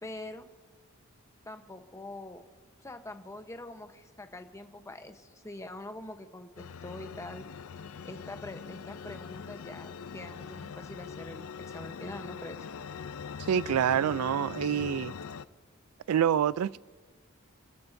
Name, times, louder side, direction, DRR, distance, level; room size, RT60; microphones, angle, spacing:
voice 1, 0.0-0.5 1.5-2.4 2.8-7.5 8.0-11.5 11.7-12.6, left 2 dB, 15° left, 0.9 m, -44 dB
sound 1, 6.6-15.5, left 6 dB, 70° left, 0.5 m, -42 dB
voice 2, 13.4-15.1 16.1-16.8, right 9 dB, 80° right, 0.3 m, -27 dB
29.0 x 13.0 x 2.7 m
head